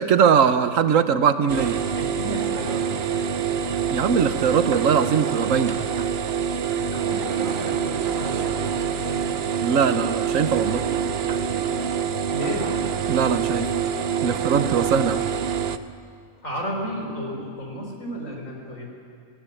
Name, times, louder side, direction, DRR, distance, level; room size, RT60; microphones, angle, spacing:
voice 1, 0.0-1.8 3.9-5.8 9.6-10.9 13.1-13.7 14.2-15.2, right 7 dB, 70° right, 11 dB, 1.3 m, -21 dB
sound 1, 1.5-15.8, right 7 dB, 55° right, 0.9 m, -26 dB
voice 2, 1.9-3.6 5.7-5.9 6.8-9.2 12.3-12.7 16.4-18.9, equal, 70° left, 0 dB, 5.0 m, -33 dB
26.0 x 16.0 x 8.6 m, 2.3 s
omnidirectional pair, 1.4 m